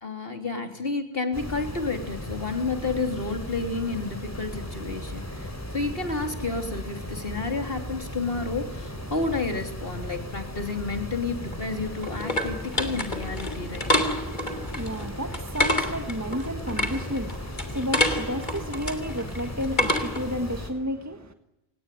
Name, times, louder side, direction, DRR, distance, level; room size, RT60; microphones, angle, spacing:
voice 1, 0.0-13.9, left 3 dB, 65° left, 3.6 m, -30 dB
sound 1, 1.3-20.7, equal, 15° left, 3.5 m, -36 dB
sound 2, 11.4-20.4, left 1 dB, 45° left, 3.2 m, -29 dB
voice 2, 14.2-21.3, equal, 15° right, 1.6 m, -32 dB
29.5 x 19.0 x 9.2 m
omnidirectional pair, 1.1 m